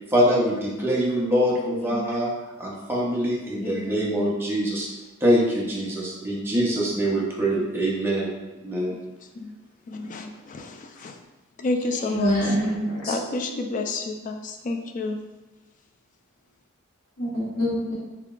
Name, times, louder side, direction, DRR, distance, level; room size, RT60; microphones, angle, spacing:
voice 1, 0.1-2.3 2.6-4.9 5.2-8.3 8.6-9.0, equal, 10° right, -5 dB, 0.7 m, -24 dB
voice 2, 3.6-4.0 9.4-9.5 9.9-11.1 11.6-12.4 13.1-15.2, left 3 dB, 40° left, 4 dB, 0.3 m, -30 dB
voice 3, 12.0-13.1 17.2-17.9, equal, 80° left, -7 dB, 1.1 m, -25 dB
3.7 x 3.4 x 2.4 m, 1.1 s
head